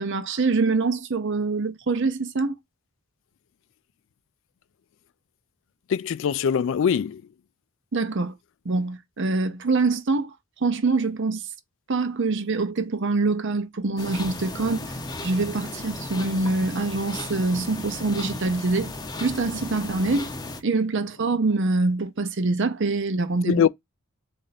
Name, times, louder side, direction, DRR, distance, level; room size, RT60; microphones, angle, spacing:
voice 1, 0.0-2.5 7.9-8.3 8.6-10.3 10.6-11.5 11.9-15.0 15.2-18.9 19.2-20.3 20.6-23.6, right 3 dB, 55° right, 0.6 m, -25 dB
voice 2, 5.9-7.2 23.5-23.7, left 7 dB, 60° left, 0.3 m, -22 dB
sound 1, 14.0-20.6, left 2 dB, 20° left, 0.6 m, -35 dB
4.3 x 2.5 x 4.0 m
head